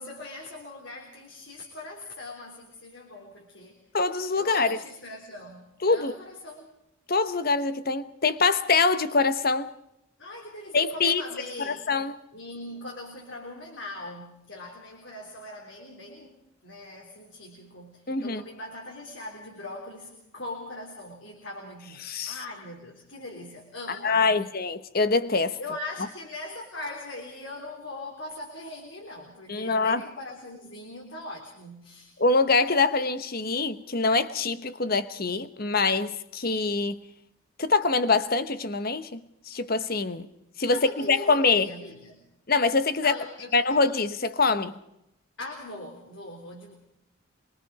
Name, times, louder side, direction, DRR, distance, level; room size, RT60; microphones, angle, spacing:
voice 1, 0.0-3.8 4.3-6.7 10.2-11.9 12.3-24.5 25.6-32.1 40.7-42.2 43.0-43.8 45.4-46.7, left 2 dB, 65° left, 3.6 m, -41 dB
voice 2, 3.9-4.8 5.8-6.1 7.1-9.7 10.7-11.2 11.6-12.2 18.1-18.4 22.0-22.4 23.9-25.6 29.5-30.0 32.2-37.0 37.6-39.2 39.5-40.3 40.6-41.7 42.5-43.2 43.5-44.7, left 4 dB, 45° left, 1.1 m, -24 dB
25.5 x 22.5 x 4.9 m
head